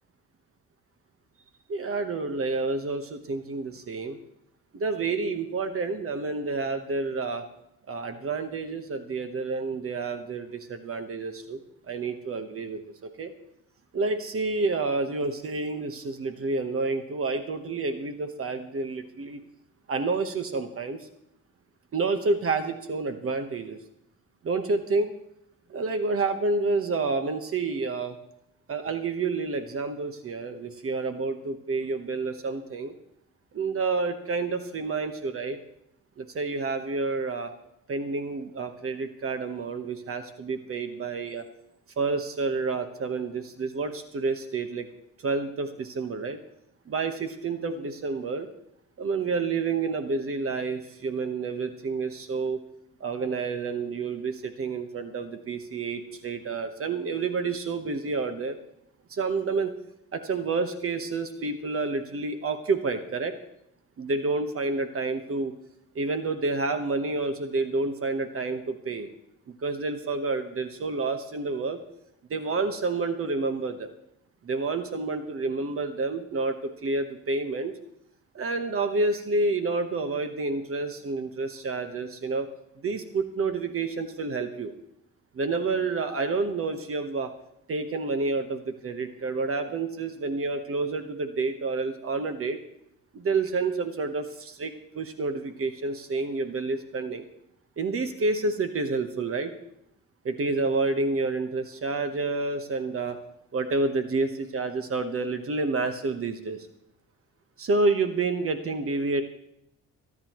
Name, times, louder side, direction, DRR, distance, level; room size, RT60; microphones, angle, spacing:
voice 1, 1.7-4.2 4.7-7.5 7.9-11.6 11.9-13.3 13.9-19.4 19.9-21.1 21.9-23.8 24.4-25.1 25.7-28.2 28.7-32.9 33.5-35.6 36.2-37.5 37.9-41.5 42.0-44.9 45.2-46.4 46.9-48.5 49.0-52.6 53.0-58.6 59.1-59.7 60.1-63.3 64.0-65.5 65.9-69.1 69.5-71.8 72.3-73.9 74.4-77.7 78.3-82.5 82.8-84.7 85.3-87.3 87.7-92.6 93.1-97.2 97.8-99.5 100.2-103.2 103.5-106.7 107.6-109.2, right 3 dB, 45° right, 8 dB, 1.2 m, -29 dB
28.0 x 9.9 x 3.1 m, 0.77 s
cardioid pair, 90°, 30 cm